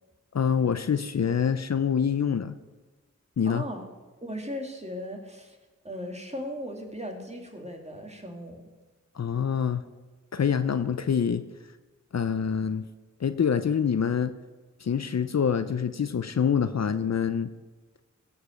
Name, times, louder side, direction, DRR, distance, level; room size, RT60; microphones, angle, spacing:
voice 1, 0.3-2.6 3.4-3.6 9.1-9.8 10.3-11.4 12.1-12.9 13.2-14.3 14.8-17.5, left 7 dB, 60° left, 12 dB, 0.6 m, -26 dB
voice 2, 3.4-3.9 4.2-5.6 5.8-8.6, equal, 20° right, 2 dB, 2.4 m, -37 dB
16.0 x 5.3 x 6.6 m, 1.2 s
cardioid pair, 45°, 31 cm